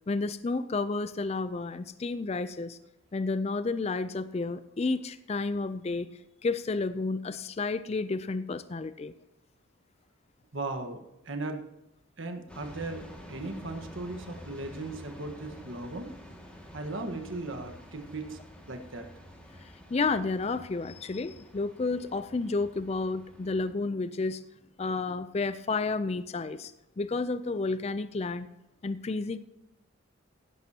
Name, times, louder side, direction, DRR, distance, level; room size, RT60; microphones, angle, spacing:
voice 1, 0.1-2.8 3.1-6.1 6.4-9.1 19.6-24.4 24.8-28.5 28.8-29.4, left 3 dB, 30° left, 13 dB, 0.4 m, -31 dB
voice 2, 10.5-11.6 12.2-16.1 16.7-18.4 18.7-19.1, right 2 dB, 65° right, 5 dB, 1.4 m, -37 dB
sound 1, 12.5-23.7, equal, 5° left, 2.0 m, -49 dB
15.5 x 11.5 x 2.8 m, 0.91 s
head